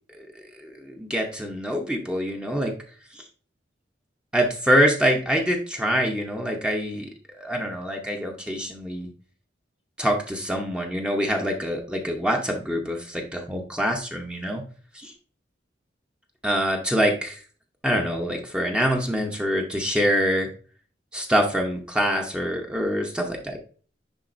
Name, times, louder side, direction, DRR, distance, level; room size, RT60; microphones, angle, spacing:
voice 1, 0.6-2.7 3.1-3.2 4.3-9.1 10.0-14.6 14.9-15.1 16.4-17.4 17.8-20.5 21.1-23.6, equal, 5° right, 2 dB, 0.8 m, -25 dB
10.0 x 4.0 x 2.5 m, 0.41 s
head